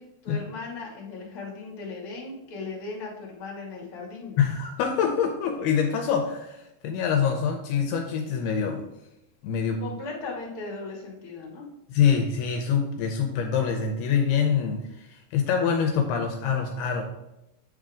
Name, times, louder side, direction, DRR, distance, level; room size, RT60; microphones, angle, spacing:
voice 1, 0.0-4.4 9.8-11.7, left 3 dB, 40° left, -4 dB, 2.1 m, -37 dB
voice 2, 4.4-8.9 9.4-9.8 11.9-17.0, left 7 dB, 80° left, 3 dB, 2.5 m, -25 dB
8.2 x 3.6 x 4.9 m, 0.91 s
omnidirectional pair, 4.7 m